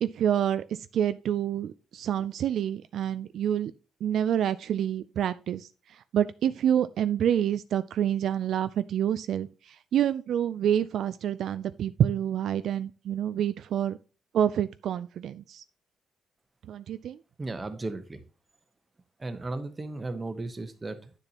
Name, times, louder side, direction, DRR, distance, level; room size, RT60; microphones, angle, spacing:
voice 1, 0.0-3.7 4.0-14.0 14.3-15.6 16.7-17.2, right 10 dB, 65° right, 0.3 m, -28 dB
voice 2, 17.4-18.2 19.2-21.1, right 2 dB, 20° right, 0.9 m, -35 dB
9.9 x 6.8 x 2.9 m
cardioid pair, 150°, 0 cm